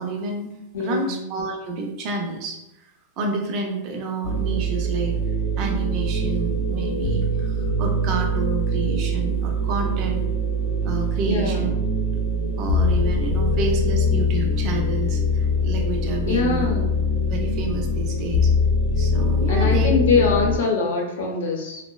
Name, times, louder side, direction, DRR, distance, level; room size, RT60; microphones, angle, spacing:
voice 1, 0.0-2.9 3.2-5.2 5.6-10.3 10.8-11.7 12.6-16.7 17.3-18.5 19.0-20.3, right 3 dB, 35° right, 1 dB, 0.4 m, -29 dB
voice 2, 0.7-1.2 11.2-11.7 16.2-16.9 19.5-21.8, left 4 dB, 80° left, 0 dB, 0.7 m, -23 dB
sound 1, 4.2-20.6, left 1 dB, 40° left, 0.3 m, -23 dB
2.8 x 2.0 x 2.3 m, 0.89 s
supercardioid pair, 150°, 0 cm